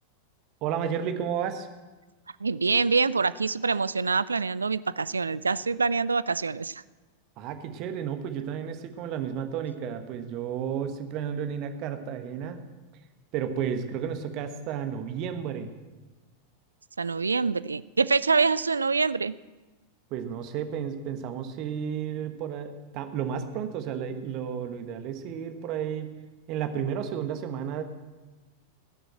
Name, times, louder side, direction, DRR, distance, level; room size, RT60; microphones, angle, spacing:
voice 1, 0.6-1.7 7.4-12.6 13.3-15.7 20.1-26.2 26.5-27.8, right 8 dB, 40° right, 7 dB, 1.3 m, -32 dB
voice 2, 2.4-6.8 17.0-19.4, right 4 dB, 75° right, 18 dB, 0.3 m, -25 dB
18.0 x 7.0 x 7.7 m, 1.2 s
figure-of-eight pair, 90°, 0 cm